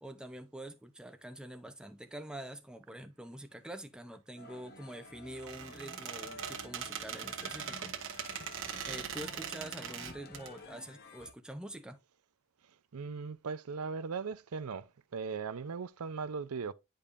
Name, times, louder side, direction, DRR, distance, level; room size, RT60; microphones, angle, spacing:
voice 1, 0.0-7.9 8.9-12.0, right 1 dB, 5° right, 0.7 m, -46 dB
sound 1, 4.4-11.3, left 2 dB, 45° left, 1.0 m, -51 dB
Squeak, 5.3-10.5, right 8 dB, 60° right, 1.3 m, -41 dB
voice 2, 12.9-14.9 15.1-16.7, right 5 dB, 85° right, 0.5 m, -38 dB
10.0 x 5.2 x 2.5 m
head